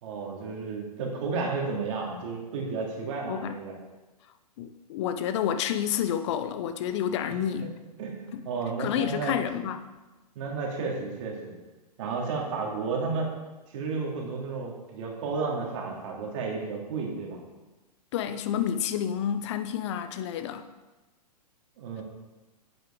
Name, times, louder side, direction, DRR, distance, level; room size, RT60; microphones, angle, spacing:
voice 1, 0.0-3.7 7.6-7.7 8.0-9.4 10.4-11.5 12.0-13.3 13.7-17.4 21.8-22.0, right 4 dB, 50° right, 0 dB, 2.5 m, -32 dB
voice 2, 4.6-7.7 8.3-8.4 8.8-9.8 18.1-20.6, left 9 dB, 45° left, 10 dB, 0.6 m, -29 dB
8.9 x 8.0 x 3.7 m, 1.1 s
figure-of-eight pair, 110°, 21 cm